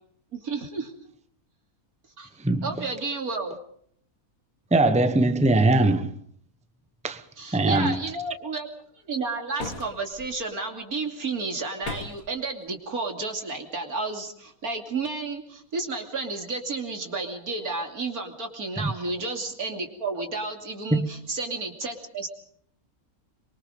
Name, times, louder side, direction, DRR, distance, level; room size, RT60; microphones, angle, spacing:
voice 1, 0.3-0.9 2.2-2.3 2.6-3.6 7.4-8.7 9.1-22.3, right 3 dB, 80° right, 3.3 m, -32 dB
voice 2, 4.7-6.1 7.0-7.2 7.5-8.0 18.8-18.9 20.9-21.1, right 2 dB, 5° right, 1.0 m, -21 dB
sound 1, 9.6-10.3 11.8-12.3, left 3 dB, 70° left, 2.7 m, -36 dB
25.0 x 24.0 x 5.3 m
omnidirectional pair, 1.5 m